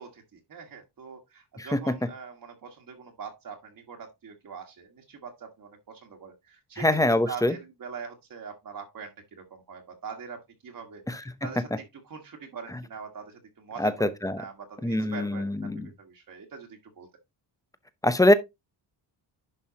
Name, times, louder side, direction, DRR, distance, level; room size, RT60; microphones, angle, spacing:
voice 1, 0.0-17.1, right 6 dB, 45° right, 1.7 m, -43 dB
voice 2, 1.6-1.9 6.8-7.5 11.1-11.2 13.8-14.4 14.8-15.9 18.0-18.3, left 1 dB, 10° left, 0.7 m, -23 dB
11.0 x 5.5 x 2.8 m
cardioid pair, 140°, 45 cm